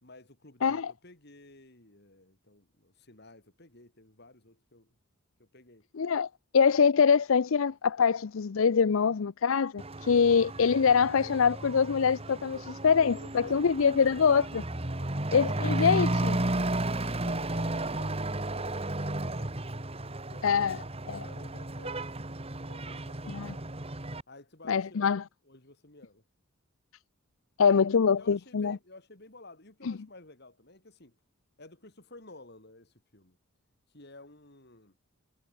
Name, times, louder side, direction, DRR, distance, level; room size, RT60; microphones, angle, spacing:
voice 1, 0.0-4.9 5.4-5.9 13.0-13.8 14.9-15.2 15.5-16.7 17.0-19.6 20.3-20.7 21.1-22.0 22.7-23.7 24.3-26.2 27.6-27.8 28.2-31.2 31.6-33.4 33.9-35.0, left 2 dB, 55° left, 3.9 m, -53 dB
voice 2, 0.6-0.9 5.9-14.6 15.3-16.3 20.4-20.8 21.1-21.2 23.3-23.5 24.7-25.2 27.6-28.8 29.8-29.9, left 6 dB, 75° left, 0.5 m, -24 dB
Truck / Accelerating revving vroom, 9.8-24.2, right 1 dB, 30° right, 1.8 m, -33 dB
head